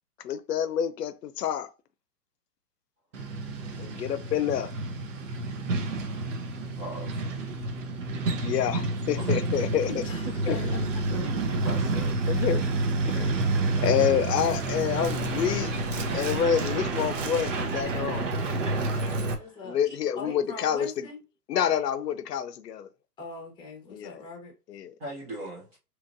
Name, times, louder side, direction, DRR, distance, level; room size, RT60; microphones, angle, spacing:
voice 1, 0.2-1.7 3.8-4.7 8.4-9.9 10.5-10.8 12.3-12.7 13.1-13.5 13.8-15.7 16.1-18.3 19.6-21.1 21.5-22.9 23.9-24.2 24.7-24.9, left 9 dB, 75° left, 0.7 m, -28 dB
Truck, 3.1-19.3, right 2 dB, 50° right, 0.9 m, -29 dB
voice 2, 6.8-7.2 9.2-9.3 11.1-12.4 16.1-16.2 18.9-19.6 19.8-20.0 25.0-25.8, right 1 dB, 20° right, 0.7 m, -40 dB
voice 3, 9.9-10.8 19.4-19.8 20.1-21.2 23.2-24.5, left 2 dB, 10° left, 0.9 m, -41 dB
4.6 x 3.1 x 2.6 m
hypercardioid pair, 140°, 48 cm